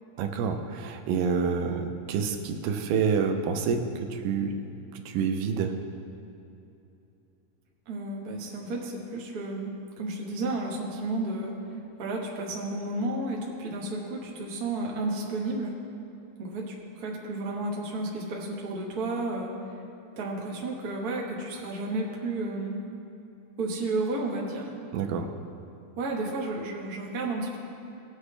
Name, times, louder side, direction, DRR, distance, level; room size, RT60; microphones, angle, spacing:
voice 1, 0.2-4.6 4.9-5.7 24.9-25.3, right 6 dB, 90° right, 5 dB, 2.4 m, -28 dB
voice 2, 7.9-9.7 10.0-11.5 12.0-15.7 16.4-19.7 20.2-22.7 23.6-24.7 26.0-27.6, right 2 dB, 50° right, -2 dB, 1.1 m, -32 dB
18.0 x 7.2 x 3.3 m, 2.7 s
omnidirectional pair, 3.8 m